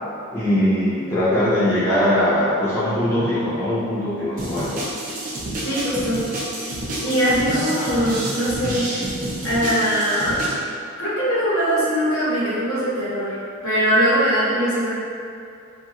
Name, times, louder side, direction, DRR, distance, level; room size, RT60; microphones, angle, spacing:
voice 1, 0.3-4.8, left 1 dB, 10° left, -12 dB, 0.5 m, -21 dB
sound 1, 4.4-10.6, right 1 dB, 40° right, 0.5 m, -29 dB
voice 2, 5.6-6.2 7.0-8.9 9.4-10.4 11.0-13.4 13.6-14.9, equal, 75° left, -9 dB, 1.0 m, -21 dB
2.7 x 2.4 x 2.9 m, 2.4 s
head